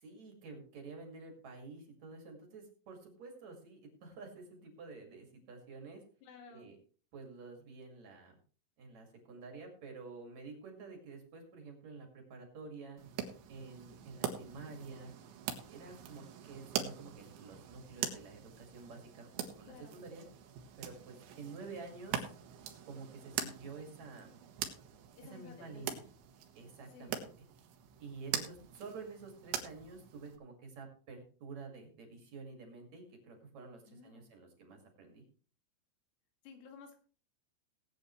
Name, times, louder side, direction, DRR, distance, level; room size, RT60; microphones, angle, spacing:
voice 1, 0.0-6.0 6.5-6.8 7.1-8.3 8.8-13.0 13.5-15.1 15.7-20.3 20.8-22.3 22.8-24.4 25.2-26.0 26.5-27.3 28.0-35.2, right 4 dB, 45° right, 2 dB, 2.8 m, -50 dB
voice 2, 6.2-6.7 19.7-20.0 25.2-26.1 26.9-27.2 33.9-34.3 36.4-37.0, left 5 dB, 85° left, 3 dB, 4.9 m, -54 dB
sound 1, 13.0-30.4, right 9 dB, 70° right, 3.4 m, -43 dB
19.5 x 8.6 x 3.2 m, 0.41 s
omnidirectional pair, 5.8 m